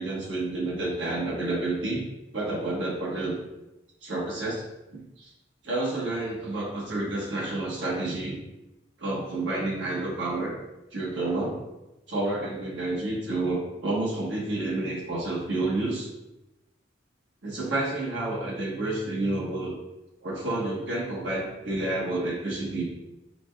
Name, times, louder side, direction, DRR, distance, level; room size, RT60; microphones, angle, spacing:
voice 1, 0.0-2.0 2.3-3.3 4.0-4.6 4.9-5.3 5.6-8.4 9.0-10.6 10.9-11.5 12.1-16.1 17.4-19.7 20.2-22.8, right 2 dB, 90° right, -5 dB, 1.2 m, -29 dB
4.9 x 2.3 x 2.2 m, 0.96 s
head